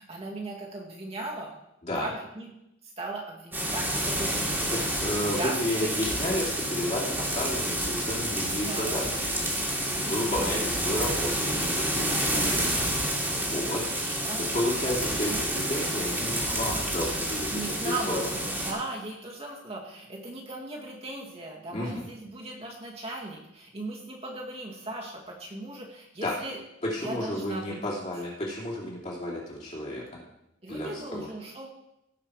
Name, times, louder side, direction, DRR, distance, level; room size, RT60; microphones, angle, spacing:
voice 1, 0.0-1.6 2.0-2.5 3.0-4.6 5.2-6.4 8.3-9.0 9.9-10.7 11.9-12.7 13.7-14.4 14.9-15.4 17.5-26.6 27.0-27.8 30.6-31.7, right 2 dB, 35° right, -2 dB, 2.0 m, -38 dB
sound 1, 3.5-18.7, right 1 dB, 10° right, 2.2 m, -29 dB
voice 2, 4.7-9.2 9.9-12.5 13.3-13.8 14.4-18.3 21.7-22.0 26.2-26.3 26.8-30.0 30.7-31.3, left 1 dB, 40° left, -5 dB, 2.9 m, -32 dB
17.0 x 5.6 x 4.9 m, 0.83 s
head